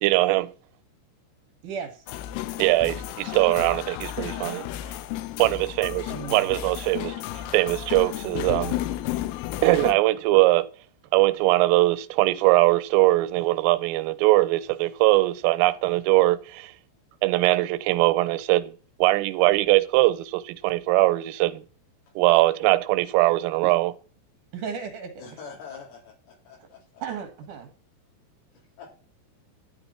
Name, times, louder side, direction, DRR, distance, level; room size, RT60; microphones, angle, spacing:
voice 1, 0.0-0.5 2.6-4.7 5.4-8.8 9.6-10.7 11.1-16.7 17.2-18.7 19.0-21.6 22.2-24.0, right 18 dB, 85° right, 3.3 m, -21 dB
voice 2, 1.6-2.1 6.1-6.5 24.5-25.2 27.0-27.7, right 6 dB, 70° right, 2.0 m, -35 dB
sound 1, 2.1-9.9, left 13 dB, 90° left, 3.5 m, -33 dB
voice 3, 25.2-27.0 28.8-28.9, left 6 dB, 70° left, 6.3 m, -44 dB
13.0 x 10.0 x 4.3 m
omnidirectional pair, 5.9 m